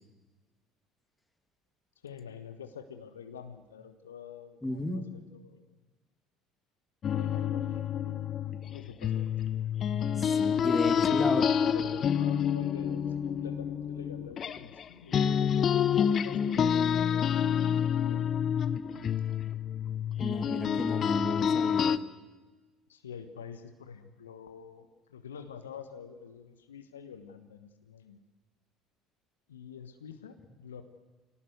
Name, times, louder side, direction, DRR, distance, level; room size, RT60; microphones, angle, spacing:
voice 1, 2.0-5.8 7.1-8.2 8.7-9.4 10.8-15.3 15.6-18.3 22.9-28.2 29.5-30.8, left 7 dB, 80° left, 9 dB, 1.3 m, -47 dB
voice 2, 4.6-5.0 10.1-11.4 20.2-22.0, left 1 dB, 10° left, 8 dB, 2.6 m, -34 dB
sound 1, 7.0-14.8 15.1-22.0, left 8 dB, 40° left, 0.8 m, -28 dB
24.5 x 18.0 x 8.0 m, 1.3 s
figure-of-eight pair, 60°, 0 cm